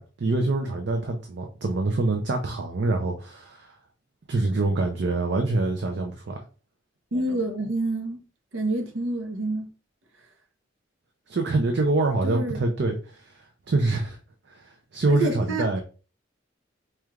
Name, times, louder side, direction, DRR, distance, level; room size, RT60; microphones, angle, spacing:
voice 1, 0.0-3.8 4.3-6.4 11.3-13.4 13.7-14.2 14.5-15.8, right 2 dB, 60° right, 0.5 m, -25 dB
voice 2, 7.1-8.2 8.5-9.7 12.2-12.6 15.1-15.8, right 2 dB, 90° right, 0.9 m, -28 dB
4.4 x 3.2 x 2.4 m
head